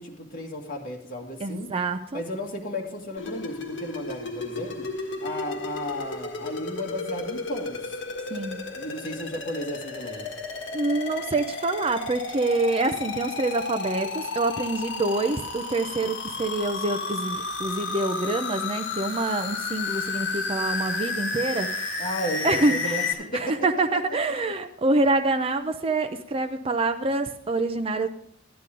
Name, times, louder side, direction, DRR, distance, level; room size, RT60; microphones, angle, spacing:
voice 1, 0.0-1.7 2.1-4.9 5.2-8.0 8.8-10.3 22.0-23.7 23.9-24.2 24.4-24.5, left 1 dB, 50° left, 1.9 m, -34 dB
voice 2, 1.4-2.2 8.3-8.6 10.7-22.0 22.4-28.1, right 2 dB, 30° right, 0.5 m, -26 dB
sound 1, 3.2-23.1, left 3 dB, 70° left, 1.6 m, -32 dB
13.0 x 9.9 x 3.8 m
head